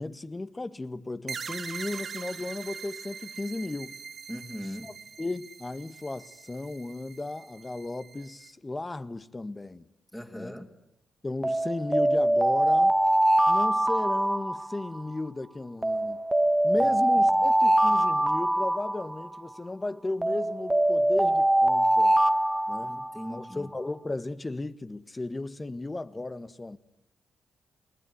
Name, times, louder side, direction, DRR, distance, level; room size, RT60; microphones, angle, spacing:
voice 1, 0.0-4.0 4.8-4.9 5.2-9.9 10.3-10.5 11.2-12.9 13.5-16.2 16.6-22.2 22.7-23.0 23.3-26.8, left 2 dB, 25° left, 1.6 m, -35 dB
sound 1, 1.3-8.5, right 6 dB, 60° right, 1.0 m, -42 dB
voice 2, 4.3-5.0 10.1-10.7 16.8-17.4 22.8-23.7, equal, 5° left, 2.9 m, -40 dB
Alarm, 11.4-15.1 15.8-19.5 20.2-23.4, right 1 dB, 15° right, 1.5 m, -23 dB
28.5 x 21.0 x 9.5 m
hypercardioid pair, 45°, 0 cm